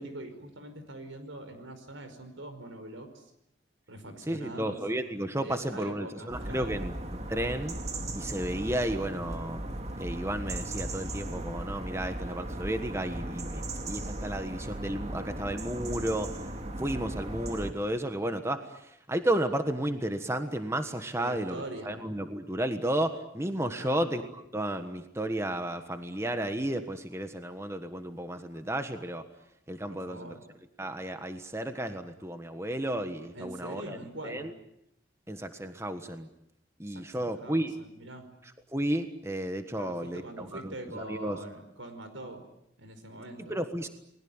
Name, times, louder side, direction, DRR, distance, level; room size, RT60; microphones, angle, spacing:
voice 1, 0.0-3.3 3.9-4.8 5.4-6.8 21.2-22.0 23.8-24.0 29.9-30.4 33.3-34.5 36.9-38.3 39.8-42.4 42.8-43.5, right 1 dB, 85° right, 8 dB, 5.3 m, -43 dB
voice 2, 4.2-7.7 8.1-9.6 10.0-16.3 16.8-29.3 29.7-30.4 30.8-34.0 34.2-34.5 35.3-36.3 36.8-37.7 38.4-41.4 43.5-43.9, right 1 dB, 15° right, 8 dB, 1.4 m, -33 dB
sound 1, 6.3-17.7, right 1 dB, 35° right, 2.4 m, -37 dB
30.0 x 21.0 x 8.9 m, 0.80 s
head